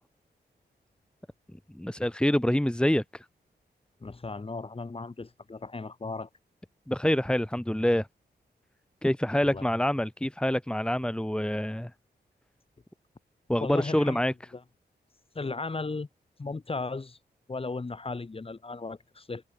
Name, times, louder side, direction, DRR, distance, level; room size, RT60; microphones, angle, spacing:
voice 1, 1.7-3.3 6.9-8.1 9.0-11.9 13.5-14.3, left 1 dB, 5° left, 2.0 m, -26 dB
voice 2, 4.0-6.3 9.4-9.6 13.6-14.2 15.3-16.1 16.4-17.2 17.5-19.4, left 3 dB, 30° left, 4.2 m, -36 dB
wide cardioid pair, 110°, 18 cm